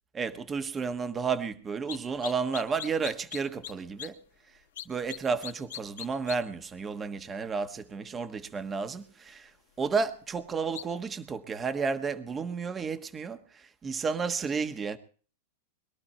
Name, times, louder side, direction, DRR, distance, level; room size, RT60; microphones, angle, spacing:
voice 1, 0.1-4.2 4.8-9.5 9.8-15.0, right 5 dB, 20° right, 1.4 m, -32 dB
sound 1, 1.9-2.0 2.2-3.7 4.0-4.1 4.8-5.2 5.4-6.4 10.7-10.8, left 11 dB, 80° left, 2.1 m, -39 dB
22.0 x 12.0 x 4.3 m
hypercardioid pair, 120°, 0 cm